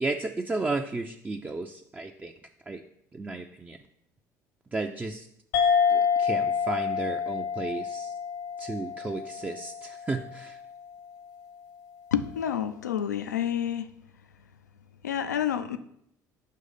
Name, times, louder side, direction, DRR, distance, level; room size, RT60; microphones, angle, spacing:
voice 1, 0.0-2.3 2.7-2.8 3.1-3.8 4.7-5.3 5.9-8.1 8.6-10.6, right 3 dB, 15° right, 4 dB, 0.5 m, -33 dB
sound 1, 5.5-10.4, left 6 dB, 65° left, 0.9 m, -27 dB
voice 2, 12.1-13.9 15.0-15.8, left 9 dB, 85° left, 10 dB, 0.4 m, -28 dB
6.4 x 3.2 x 5.5 m, 0.72 s
figure-of-eight pair, 60°, 9 cm